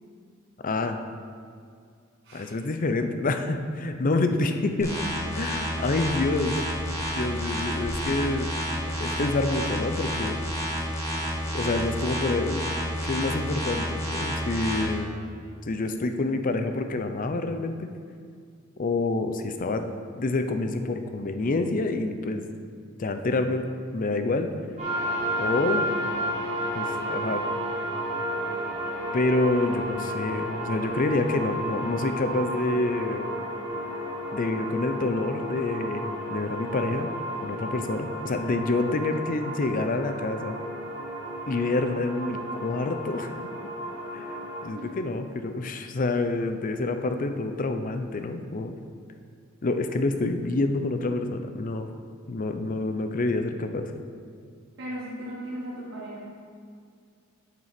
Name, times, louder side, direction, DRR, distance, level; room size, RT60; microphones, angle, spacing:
voice 1, 0.6-1.0 2.3-4.9 5.3-6.7 7.1-8.5 9.0-10.4 11.5-12.6 13.0-15.2 15.7-17.9 18.8-19.9 20.2-22.4 23.0-23.7 23.9-24.5 25.4-25.9 26.7-27.4 29.1-33.3 34.3-37.1 37.4-40.6 41.5-43.4 44.1-44.3 44.6-48.8 49.6-51.9 52.3-53.9, left 2 dB, 40° left, 7 dB, 0.5 m, -27 dB
voice 2, 2.2-2.6 4.4-4.5 5.7-5.8 44.7-44.9 54.8-56.2, equal, 60° right, -7 dB, 1.3 m, -37 dB
sound 1, 4.8-14.8, equal, 15° left, 1.6 m, -30 dB
sound 2, 24.8-44.6, equal, 35° right, 2.0 m, -32 dB
7.2 x 6.7 x 5.0 m, 2.2 s
head